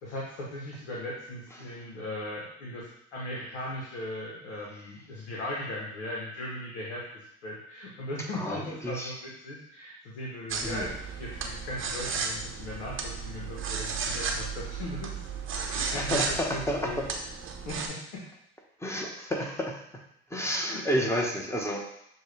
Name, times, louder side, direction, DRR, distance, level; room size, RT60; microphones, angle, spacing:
voice 1, 0.0-15.2 15.7-17.0 17.6-18.2 19.3-19.5 20.6-21.2, left 1 dB, 85° left, -4 dB, 1.0 m, -38 dB
voice 2, 8.3-9.1 10.6-10.9 15.9-17.0 18.8-19.8 20.3-21.8, equal, 10° left, 0 dB, 1.0 m, -30 dB
sound 1, 10.5-17.9, right 5 dB, 35° right, 0.8 m, -34 dB
6.4 x 2.4 x 3.2 m, 0.74 s
hypercardioid pair, 65°, 34 cm